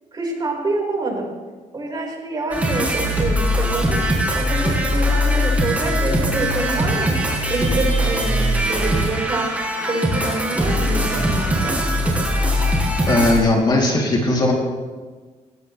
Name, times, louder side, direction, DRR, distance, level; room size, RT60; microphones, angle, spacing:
voice 1, 0.1-1.3 1.7-4.0 4.3-7.2 7.5-9.5 9.8-11.8, right 2 dB, 30° right, -1 dB, 5.1 m, -26 dB
sound 1, 2.5-13.4, equal, 10° right, 5.1 m, -21 dB
voice 2, 13.1-14.5, left 2 dB, 35° left, -2 dB, 3.3 m, -18 dB
21.5 x 18.5 x 3.4 m, 1.4 s
cardioid pair, 125°, 13 cm